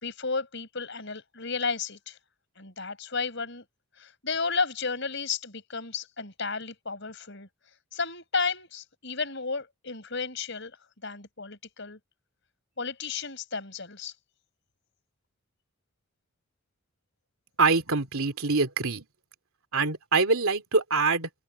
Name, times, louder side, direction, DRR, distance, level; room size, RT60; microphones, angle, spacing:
voice 1, 0.0-2.2 2.6-3.7 4.0-7.5 7.9-10.8 11.0-12.0 12.8-14.1, left 4 dB, 55° left, 5.7 m, -33 dB
voice 2, 17.6-19.1 19.7-21.3, right 4 dB, 75° right, 2.7 m, -24 dB
head